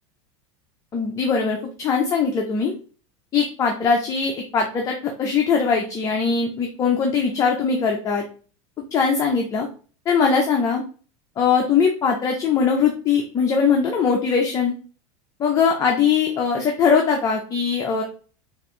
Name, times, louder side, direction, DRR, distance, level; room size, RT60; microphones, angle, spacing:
voice 1, 0.9-2.7 3.3-8.2 8.9-9.7 10.1-10.8 11.4-14.7 15.4-18.0, left 5 dB, 20° left, 1 dB, 0.6 m, -21 dB
5.3 x 2.5 x 3.0 m, 0.39 s
supercardioid pair, 150°, 15 cm